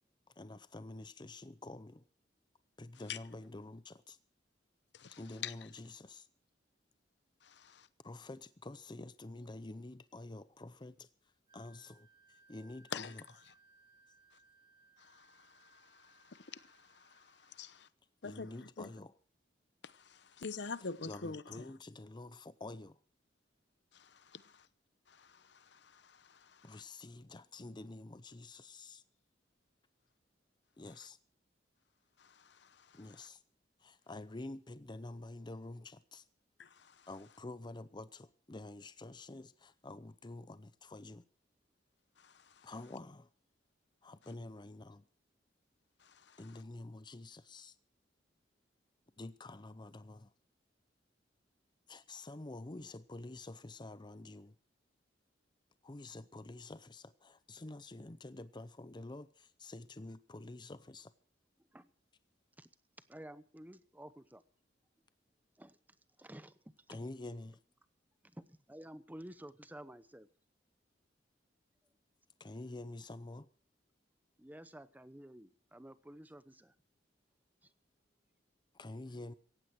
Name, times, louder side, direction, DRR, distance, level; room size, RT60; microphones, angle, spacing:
voice 1, 0.4-2.0 2.8-4.2 5.1-6.3 8.0-11.1 11.5-13.2 18.2-19.1 21.0-23.0 26.6-29.0 30.8-31.2 32.9-33.4 33.8-36.2 37.1-41.2 42.6-43.3 44.0-45.1 46.4-47.8 49.2-50.3 51.9-54.6 55.8-61.1 66.9-67.6 72.4-73.5 78.7-79.3, left 2 dB, 25° left, 0.6 m, -48 dB
voice 2, 4.9-5.5 7.4-7.9 12.9-13.1 15.0-17.9 18.2-18.9 19.8-21.7 23.9-24.7 25.1-26.8 32.2-33.2 36.6-37.1 42.2-42.7 46.0-46.4, left 5 dB, 65° left, 0.9 m, -47 dB
Wind instrument woodwind instrument, 11.5-17.6, right 3 dB, 25° right, 4.8 m, -67 dB
voice 3, 63.1-64.4 65.6-65.8 66.2-66.6 66.9-67.0 68.2-70.3 74.4-76.7 77.6-77.7 79.1-79.2, right 1 dB, 10° right, 0.8 m, -52 dB
17.5 x 15.0 x 4.6 m
head